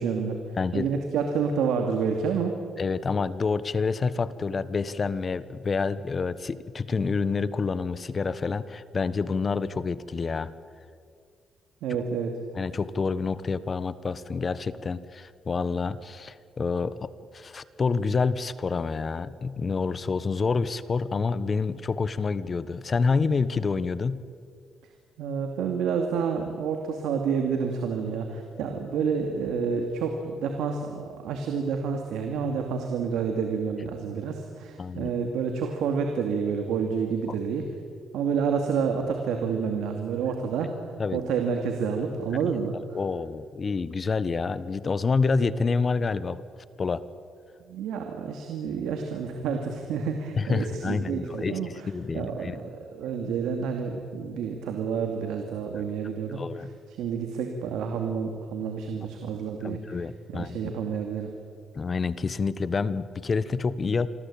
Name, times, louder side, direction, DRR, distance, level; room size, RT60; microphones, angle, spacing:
voice 1, 0.0-0.4 0.7-2.5 11.8-12.3 25.2-37.6 38.1-40.7 41.1-43.0 47.7-51.7 52.1-56.4 57.0-60.0 60.3-61.3, right 6 dB, 85° right, 4 dB, 2.5 m, -29 dB
voice 2, 0.6-0.9 2.8-10.5 12.5-24.2 34.8-35.1 41.0-41.2 42.9-46.4 46.8-47.0 50.4-52.6 56.0-56.7 59.6-60.6 61.7-64.1, left 4 dB, 35° left, 15 dB, 1.2 m, -28 dB
27.5 x 21.5 x 8.8 m, 2.2 s
cardioid pair, 90°, 0 cm